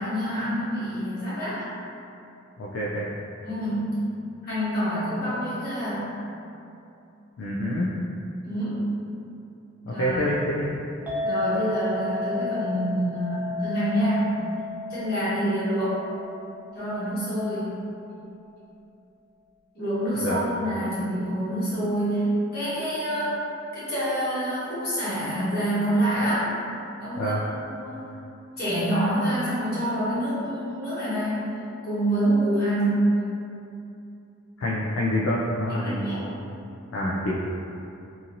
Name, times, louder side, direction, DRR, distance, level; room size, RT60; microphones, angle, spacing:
voice 1, 0.0-1.6 3.4-4.0 4.4-6.1 8.4-8.9 9.9-10.2 11.2-14.4 14.9-16.0 16.7-17.8 19.7-23.4 23.7-26.5 27.0-28.1 28.6-31.5 31.8-33.1 35.7-36.2, right 1 dB, 50° left, -12 dB, 1.3 m, -27 dB
voice 2, 2.6-3.1 7.4-7.9 9.8-10.7 20.2-20.4 27.2-27.4 34.6-36.2 36.9-37.3, equal, 75° left, -6 dB, 0.3 m, -26 dB
Chink clink, 11.1-17.4, left 3 dB, 10° right, 0.5 m, -33 dB
2.9 x 2.5 x 2.6 m, 2.7 s
head